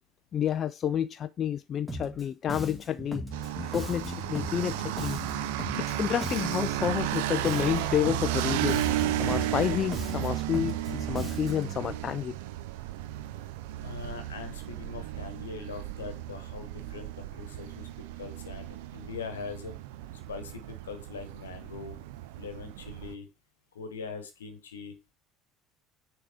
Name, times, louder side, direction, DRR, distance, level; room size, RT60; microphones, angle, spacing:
voice 1, 0.3-3.2 3.6-5.2 5.8-8.8 9.2-12.3, left 9 dB, 45° left, 0.3 m, -30 dB
Bass guitar, 1.9-2.2 2.5-7.2 7.4-11.8, equal, ahead, 2.1 m, -38 dB
sound 1, 3.3-23.1, right 13 dB, 70° right, 0.5 m, -34 dB
voice 2, 13.8-17.9 18.2-19.7 20.3-22.0 22.4-23.3 23.7-24.9, left 5 dB, 80° left, 1.1 m, -41 dB
6.6 x 3.5 x 4.9 m
hypercardioid pair, 65°, 0 cm